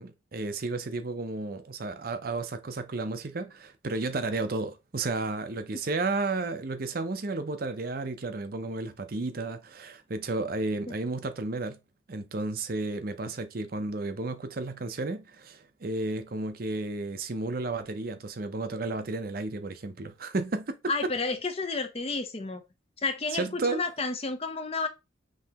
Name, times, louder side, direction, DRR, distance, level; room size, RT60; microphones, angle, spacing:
voice 1, 0.0-11.8 12.1-20.7 21.0-21.1 23.3-23.8, right 3 dB, 50° right, 0.6 m, -32 dB
voice 2, 20.9-22.6 23.0-24.9, left 3 dB, 30° left, 0.6 m, -31 dB
5.4 x 3.3 x 2.9 m
head